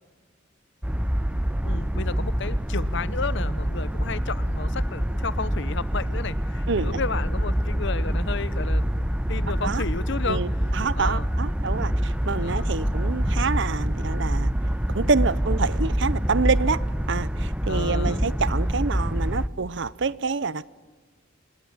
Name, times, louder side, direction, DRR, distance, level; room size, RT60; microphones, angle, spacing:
sound 1, 0.8-19.5, equal, 5° right, 0.8 m, -26 dB
voice 1, 1.6-10.4 11.0-11.3 12.4-12.7 17.4-18.2, left 4 dB, 65° left, 1.0 m, -33 dB
voice 2, 6.7-7.0 9.6-9.8 10.3-14.5 14.9-20.6, right 4 dB, 65° right, 0.8 m, -27 dB
28.0 x 21.0 x 8.9 m
head